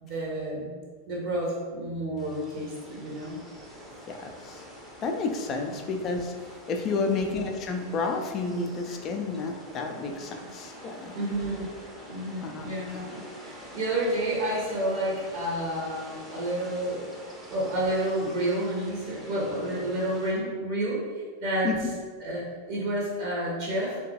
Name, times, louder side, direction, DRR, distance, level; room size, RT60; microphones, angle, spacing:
voice 1, 0.0-0.7 1.1-3.4 6.9-7.3 11.1-11.7 12.1-17.1 17.5-21.9 22.2-24.0, right 1 dB, 45° right, -4 dB, 0.8 m, -30 dB
sound 1, 2.2-20.3, equal, 15° right, 0.6 m, -46 dB
voice 2, 4.1-4.6 5.0-6.3 6.7-11.1 12.4-12.7 21.6-21.8, left 4 dB, 30° left, 4 dB, 0.4 m, -30 dB
3.6 x 2.2 x 2.8 m, 1.5 s
figure-of-eight pair, 90°, 0 cm